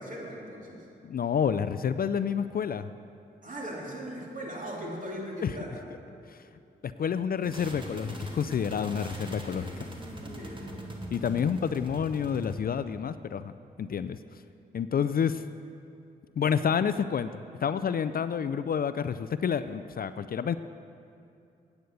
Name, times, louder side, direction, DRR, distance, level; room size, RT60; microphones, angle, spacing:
voice 1, 0.0-0.9 3.4-5.8 8.7-9.0 9.6-9.8 10.2-10.7, equal, 40° right, -3 dB, 3.0 m, -39 dB
voice 2, 1.0-2.9 5.4-5.5 6.3-6.4 6.8-9.9 11.1-13.5 13.8-14.2 14.7-15.4 16.4-20.6, left 7 dB, 50° left, 13 dB, 0.4 m, -29 dB
sound 1, 7.4-12.6, equal, 25° right, 1.8 m, -40 dB
9.4 x 8.0 x 6.8 m, 2.6 s
supercardioid pair, 40°, 20 cm